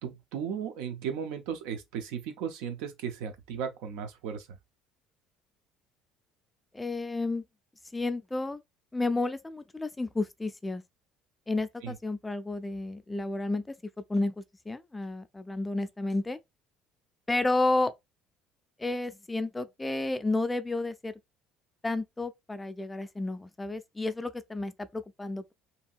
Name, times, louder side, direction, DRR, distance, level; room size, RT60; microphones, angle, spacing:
voice 1, 0.0-4.6 11.8-12.0, right 7 dB, 85° right, 0.6 m, -36 dB
voice 2, 6.7-7.4 7.9-8.6 8.9-10.8 11.5-13.6 14.1-16.4 17.3-17.9 18.8-21.1 21.8-25.5, left 2 dB, 15° left, 0.3 m, -31 dB
2.8 x 2.6 x 2.3 m
supercardioid pair, 100°, 0 cm